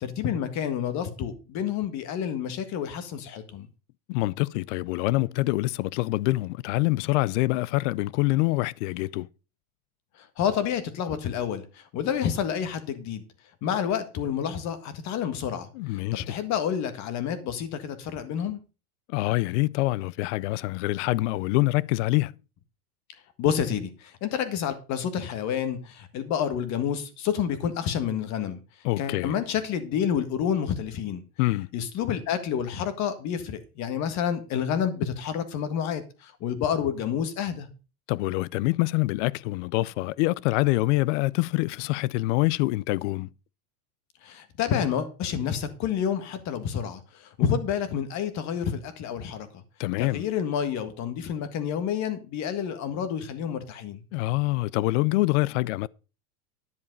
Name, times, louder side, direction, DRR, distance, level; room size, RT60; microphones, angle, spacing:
voice 1, 0.0-3.7 10.4-13.2 13.6-15.7 16.1-18.6 23.4-28.6 29.0-31.2 31.7-37.7 44.2-49.5 50.0-54.0, left 8 dB, 35° left, 1.7 m, -29 dB
voice 2, 4.1-9.3 15.7-16.4 19.1-22.4 28.8-29.3 31.4-31.7 38.1-43.3 49.8-50.2 54.1-55.9, left 20 dB, 55° left, 0.5 m, -25 dB
10.5 x 7.4 x 5.3 m
supercardioid pair, 145°, 45 cm